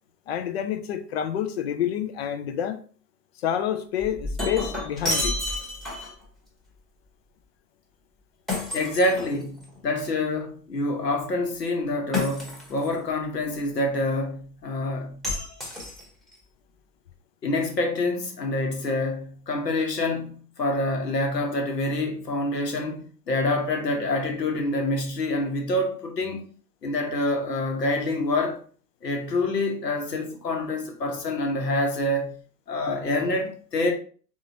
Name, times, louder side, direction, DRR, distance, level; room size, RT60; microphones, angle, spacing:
voice 1, 0.3-2.8 3.4-5.4, left 9 dB, 40° left, 0.5 m, -28 dB
Shatter, 4.0-6.2 8.5-9.8 12.1-12.9 15.2-16.3, left 2 dB, ahead, 1.0 m, -30 dB
voice 2, 8.7-15.3 17.4-26.4 26.8-28.6 29.0-32.4 32.7-33.9, left 2 dB, 75° left, 1.2 m, -26 dB
3.7 x 3.7 x 2.7 m
figure-of-eight pair, 95°, 49 cm